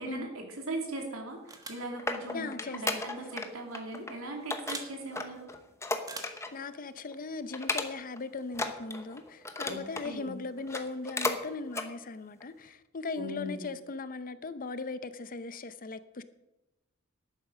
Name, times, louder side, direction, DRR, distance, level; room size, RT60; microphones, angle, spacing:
voice 1, 0.0-5.5 9.6-10.4 13.2-13.7, right 1 dB, 80° right, 2.8 m, -39 dB
sound 1, 1.5-3.5 3.7-4.1 4.5-6.7 7.0-7.1 7.5-8.2 8.5-10.1 10.6-11.4 11.7-11.9 12.4-12.5, left 2 dB, 15° left, 0.9 m, -34 dB
sound 2, 1.5-1.9 3.2-3.4 4.7-4.9 6.0-6.5, right 3 dB, 15° right, 1.4 m, -43 dB
voice 2, 2.3-3.0 6.5-16.2, left 3 dB, 40° left, 0.6 m, -39 dB
11.0 x 8.8 x 6.3 m
head